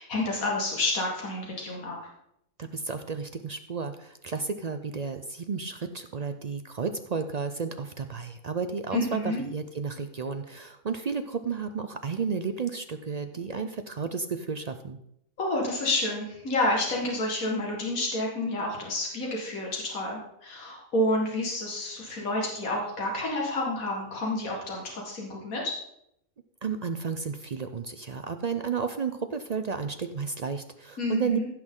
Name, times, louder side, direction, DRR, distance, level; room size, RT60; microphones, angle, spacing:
voice 1, 0.0-2.1 8.9-9.4 15.4-25.7 31.0-31.5, left 1 dB, 85° left, -2 dB, 2.2 m, -29 dB
voice 2, 2.6-15.0 26.6-31.4, right 5 dB, 55° right, 8 dB, 0.4 m, -32 dB
15.5 x 6.2 x 3.8 m, 0.76 s
omnidirectional pair, 1.4 m